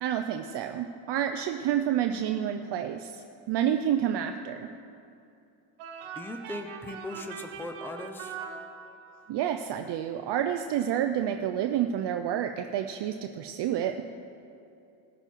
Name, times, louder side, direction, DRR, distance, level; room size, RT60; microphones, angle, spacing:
voice 1, 0.0-3.1 3.5-4.7 9.3-14.1, right 10 dB, 55° right, 6 dB, 0.6 m, -29 dB
sound 1, 5.8-9.3, right 6 dB, 75° right, 1.4 m, -42 dB
voice 2, 6.1-8.4, left 1 dB, 5° left, 5 dB, 0.8 m, -39 dB
19.5 x 6.8 x 4.6 m, 2.7 s
cardioid pair, 110°, 50 cm